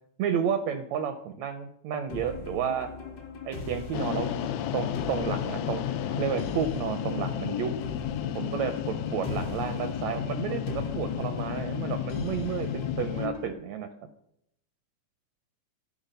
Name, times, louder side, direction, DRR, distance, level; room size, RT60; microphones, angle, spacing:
voice 1, 0.2-2.9 3.5-4.3 4.7-7.8 8.3-13.9, right 8 dB, 80° right, 8 dB, 1.6 m, -31 dB
sound 1, 2.1-13.5, left 4 dB, 55° left, 1.1 m, -40 dB
sound 2, 3.9-13.3, left 10 dB, 80° left, 1.5 m, -32 dB
11.5 x 4.7 x 5.2 m, 0.77 s
omnidirectional pair, 3.5 m